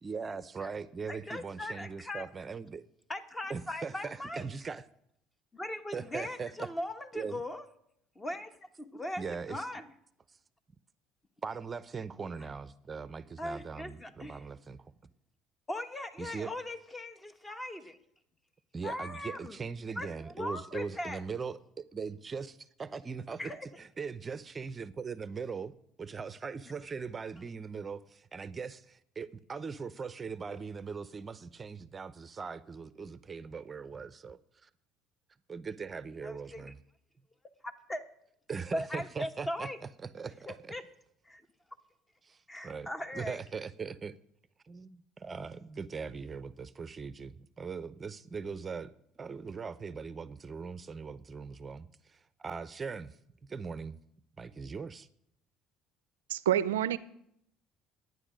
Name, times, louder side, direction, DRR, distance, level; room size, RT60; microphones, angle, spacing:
voice 1, 0.0-2.8 3.5-4.8 5.9-6.7 7.1-7.4 9.2-9.7 10.3-10.4 11.4-14.9 16.2-16.5 18.7-25.7 26.0-34.7 35.5-36.8 38.5-40.7 42.2-44.2 44.6-53.2 53.5-54.0 54.4-55.1, right 5 dB, 30° right, 0.6 m, -40 dB
voice 2, 1.1-2.3 3.1-4.4 5.5-7.7 8.1-8.5 8.8-9.9 13.4-14.4 15.7-18.0 18.8-19.6 20.0-21.2 23.4-23.6 36.2-36.7 37.6-38.0 38.7-39.8 40.5-40.8 41.2-41.4 42.5-43.4, left 1 dB, 20° left, 1.3 m, -39 dB
voice 3, 56.3-57.0, right 11 dB, 90° right, 0.4 m, -27 dB
12.0 x 9.5 x 5.2 m
hypercardioid pair, 70°, 0 cm